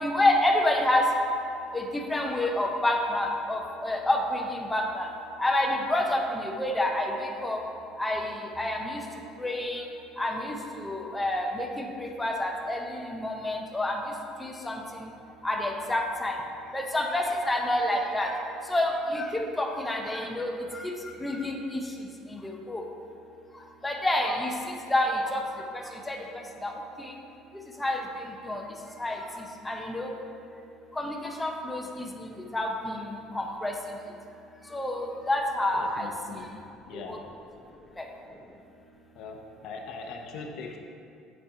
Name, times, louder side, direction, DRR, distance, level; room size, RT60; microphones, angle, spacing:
voice 1, 0.0-1.0 1.7-5.1 5.4-7.6 8.0-8.3 8.6-9.0 9.4-9.8 10.2-14.0 14.4-14.7 15.4-16.3 16.7-18.3 18.7-20.5 20.8-20.9 21.2-21.8 22.3-22.8 23.8-24.5 24.9-25.4 26.1-26.2 26.6-26.7 27.0-27.1 27.8-28.0 28.4-28.6 29.0-29.2 29.6-30.1 31.0-31.8 32.5-33.7 34.7-36.1 37.1-37.2 38.0-38.1, left 1 dB, 10° left, 1 dB, 0.5 m, -28 dB
voice 2, 35.7-36.5 36.9-37.2 39.1-40.8, left 4 dB, 55° left, 3 dB, 0.6 m, -41 dB
7.9 x 2.8 x 4.7 m, 2.5 s
cardioid pair, 160°, 0 cm